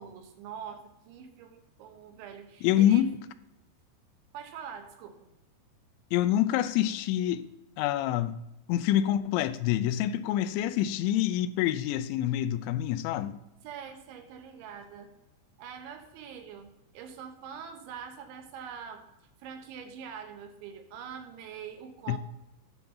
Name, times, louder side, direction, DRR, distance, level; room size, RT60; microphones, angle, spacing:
voice 1, 0.0-3.1 4.3-5.2 13.6-15.1 15.6-19.0 19.4-22.2, right 7 dB, 85° right, 3.4 m, -44 dB
voice 2, 2.6-3.1 6.1-7.5 7.8-8.4 8.7-13.4 22.1-22.2, left 12 dB, 85° left, 2.9 m, -26 dB
10.5 x 3.9 x 7.1 m
omnidirectional pair, 5.2 m